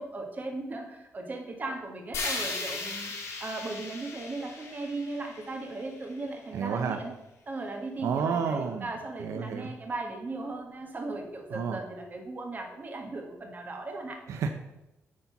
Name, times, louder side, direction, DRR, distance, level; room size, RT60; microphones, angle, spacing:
voice 1, 0.0-3.1 3.4-7.1 7.5-14.2, right 2 dB, 35° right, 2 dB, 1.8 m, -37 dB
sound 1, 2.1-6.2, left 3 dB, 70° left, 2.3 m, -37 dB
voice 2, 6.5-7.0 8.0-8.9 9.2-9.7 11.5-11.8 14.3-14.5, right 6 dB, 85° right, 5 dB, 0.7 m, -30 dB
9.7 x 4.2 x 5.8 m, 0.96 s
cardioid pair, 100°, 5 cm